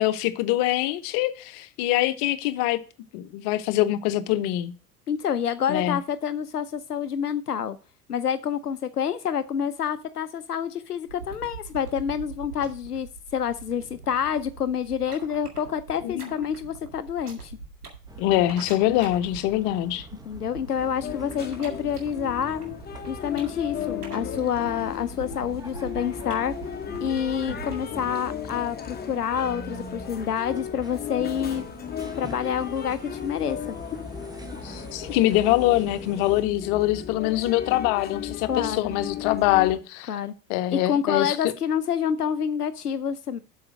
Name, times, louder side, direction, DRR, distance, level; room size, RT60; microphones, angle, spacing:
voice 1, 0.0-2.8 3.1-4.7 5.7-6.0 16.0-16.5 18.2-20.1 34.6-40.1 40.5-41.5, left 15 dB, 50° left, 0.9 m, -24 dB
voice 2, 5.1-7.8 8.1-13.1 13.3-17.5 20.3-22.6 23.1-26.5 27.0-31.6 32.2-33.6 38.5-39.0 40.1-40.3 40.7-43.4, left 8 dB, 85° left, 0.6 m, -28 dB
sound 1, 11.1-27.8, right 5 dB, 80° right, 2.0 m, -43 dB
sound 2, 18.1-36.4, right 2 dB, 10° right, 1.1 m, -46 dB
sound 3, 20.8-39.8, left 8 dB, 20° left, 1.1 m, -36 dB
7.8 x 5.5 x 6.1 m
figure-of-eight pair, 70°, 45 cm